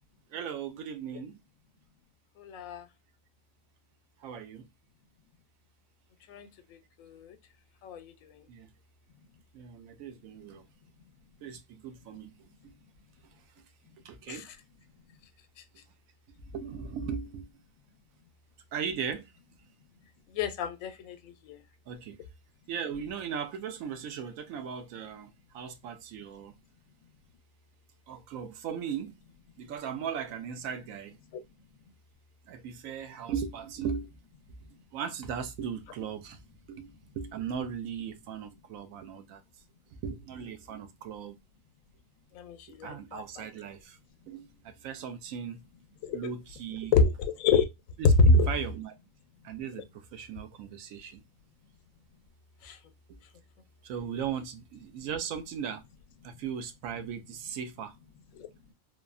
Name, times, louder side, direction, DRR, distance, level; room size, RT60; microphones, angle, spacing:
voice 1, 0.3-1.4 4.2-4.7 8.5-8.7 9.5-10.6 11.4-12.3 12.6-12.7 13.2-13.3 14.0-14.5 16.5-17.5 18.7-19.3 21.9-22.2 22.7-26.6 28.1-29.1 29.6-31.2 32.5-34.1 34.9-36.4 36.7-39.4 39.9-41.4 42.8-44.0 44.2-45.6 46.1-46.9 48.0-48.9 49.4-51.2 53.1-53.2 53.8-55.8 56.2-58.0, right 7 dB, 80° right, 1.0 m, -38 dB
voice 2, 2.4-2.8 6.3-6.5 7.0-7.4 7.8-8.4 14.3-14.4 20.3-21.6 42.3-43.4 46.0-46.2 46.9-47.7 48.2-48.5 52.6-52.8 58.4-58.5, left 3 dB, 85° left, 1.0 m, -27 dB
3.3 x 2.1 x 2.3 m
omnidirectional pair, 1.4 m